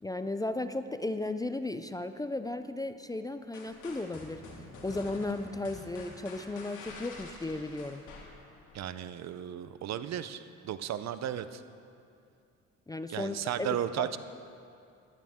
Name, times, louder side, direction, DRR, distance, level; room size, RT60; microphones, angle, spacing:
voice 1, 0.0-4.4 4.8-8.1 12.9-13.7 14.0-14.2, left 2 dB, 15° left, 10 dB, 0.4 m, -35 dB
sound 1, 3.5-8.8, left 3 dB, 75° left, 2.4 m, -48 dB
voice 2, 8.7-11.6 13.1-14.2, right 10 dB, 60° right, 13 dB, 0.6 m, -35 dB
15.0 x 11.5 x 3.6 m, 2.4 s
cardioid pair, 90°, 30 cm